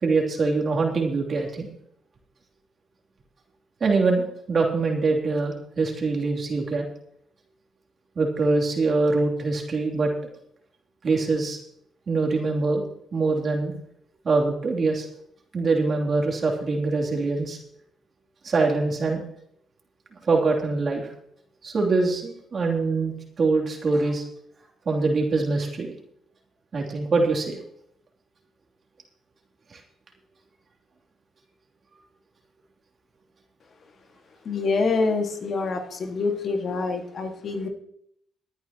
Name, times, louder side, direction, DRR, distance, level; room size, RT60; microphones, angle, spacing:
voice 1, 0.0-1.7 3.8-6.9 8.1-10.1 11.0-11.6 12.1-12.8 13.1-13.7 14.2-15.1 15.5-17.6 18.4-19.2 20.2-21.1 21.6-24.2 24.8-25.9 26.7-27.6 29.7-29.8, right 3 dB, 50° right, 0 dB, 3.0 m, -24 dB
voice 2, 34.5-37.7, left 4 dB, 60° left, 4 dB, 1.9 m, -26 dB
22.5 x 9.5 x 3.0 m, 0.71 s
supercardioid pair, 65°, 0 cm